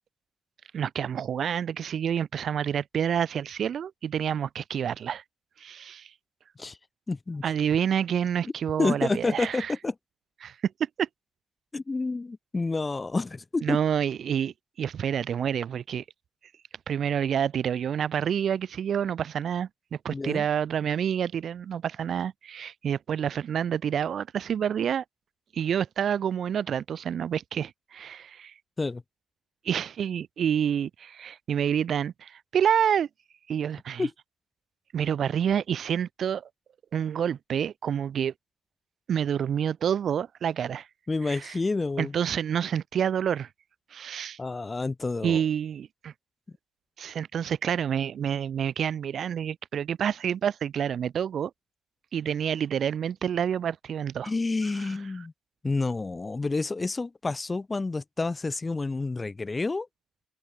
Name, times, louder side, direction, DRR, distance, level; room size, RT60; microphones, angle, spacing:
voice 1, 0.7-5.2 5.6-6.1 7.4-9.7 10.4-10.5 11.0-11.1 13.6-16.0 16.9-25.0 25.5-28.5 29.6-33.1 33.5-34.1 34.9-36.5 36.9-38.3 39.1-40.9 41.3-41.5 42.0-43.5 43.9-44.4 45.2-46.1 47.0-51.5 52.1-54.3, right 8 dB, 60° right, 5.9 m, -28 dB
voice 2, 7.1-7.4 8.8-9.9 11.7-13.8 20.1-20.5 28.8-29.0 34.0-34.1 41.1-42.1 44.4-45.4 54.2-55.3 55.6-59.9, left 3 dB, 25° left, 1.7 m, -29 dB
cardioid pair, 90°, 0 cm